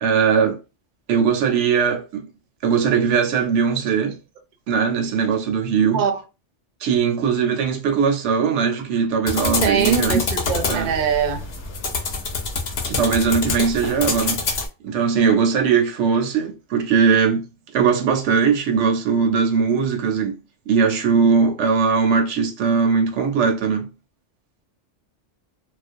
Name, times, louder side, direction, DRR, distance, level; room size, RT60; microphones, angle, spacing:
voice 1, 0.0-0.6 1.1-2.2 2.6-4.2 4.7-6.0 6.8-10.2 10.7-10.9 12.9-14.4 14.8-17.4 17.7-20.4 20.7-23.9, right 6 dB, 75° right, 0.9 m, -20 dB
sound 1, 9.3-14.7, left 4 dB, 60° left, 0.8 m, -26 dB
voice 2, 9.6-11.4, right 7 dB, 55° right, 0.6 m, -22 dB
2.4 x 2.0 x 2.5 m
omnidirectional pair, 1.2 m